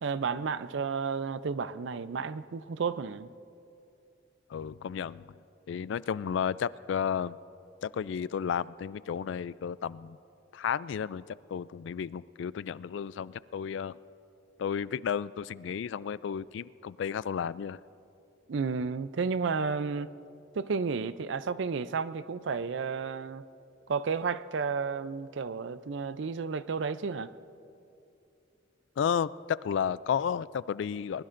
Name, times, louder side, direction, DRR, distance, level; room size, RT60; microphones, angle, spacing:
voice 1, 0.0-3.3 18.5-20.1 20.6-23.5 23.9-27.3, right 5 dB, 65° right, 0.4 m, -32 dB
voice 2, 4.5-5.3 5.7-7.4 7.8-10.2 10.5-14.0 14.6-17.8 29.0-31.2, left 7 dB, 65° left, 0.3 m, -32 dB
23.0 x 20.5 x 2.6 m
head